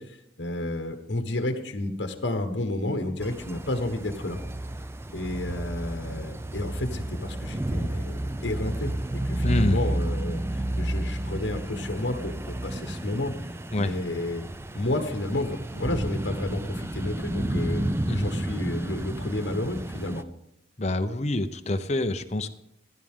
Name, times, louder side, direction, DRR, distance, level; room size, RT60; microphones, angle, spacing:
voice 1, 0.0-4.4 5.1-13.3 13.8-14.5 14.7-17.9 18.1-20.2, left 1 dB, 70° left, 6 dB, 1.3 m, -31 dB
sound 1, 3.2-20.2, right 1 dB, 15° right, 0.4 m, -31 dB
voice 2, 9.4-9.8 13.7-13.9 18.1-18.3 20.8-22.5, left 1 dB, 35° left, 8 dB, 0.8 m, -26 dB
15.5 x 11.5 x 3.7 m, 0.82 s
head